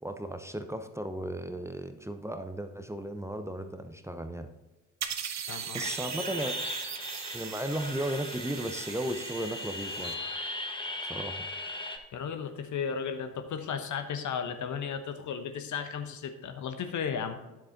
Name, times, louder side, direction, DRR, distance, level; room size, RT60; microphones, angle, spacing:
voice 1, 0.0-4.5 5.7-6.6 7.3-10.2 11.1-11.5, right 1 dB, 5° right, 8 dB, 0.8 m, -35 dB
sound 1, 5.0-10.1, right 8 dB, 45° right, 1.0 m, -39 dB
voice 2, 5.5-5.9 12.1-17.4, left 7 dB, 50° left, 8 dB, 1.0 m, -35 dB
sound 2, 5.8-12.0, left 2 dB, 15° left, 1.5 m, -38 dB
10.0 x 7.7 x 3.8 m, 1.1 s
hypercardioid pair, 50°, 38 cm